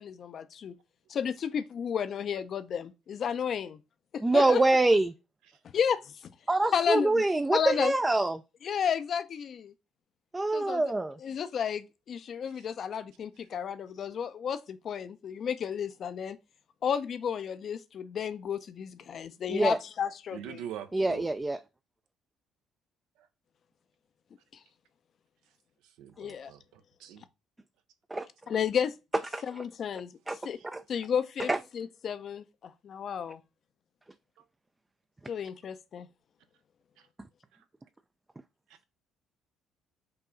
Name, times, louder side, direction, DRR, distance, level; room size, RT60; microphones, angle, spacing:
voice 1, 0.0-0.7 1.1-3.8 4.1-4.6 5.7-6.3 6.7-7.2 7.5-7.9 8.6-9.7 10.5-10.8 11.2-16.4 16.8-20.6 26.2-26.5 28.5-28.9 29.5-30.1 30.4-30.6 30.9-33.4 35.3-36.1, left 7 dB, 55° left, 0.5 m, -32 dB
voice 2, 4.2-5.1 6.5-8.4 10.3-11.2 19.5-19.8 20.9-21.6 28.1-28.3 29.3-29.4 30.3-30.4 30.7-30.8 31.5-31.6, right 2 dB, 15° right, 0.3 m, -25 dB
voice 3, 20.3-21.3 26.0-27.2, right 10 dB, 80° right, 0.6 m, -43 dB
5.6 x 2.3 x 3.8 m
supercardioid pair, 65°, 0 cm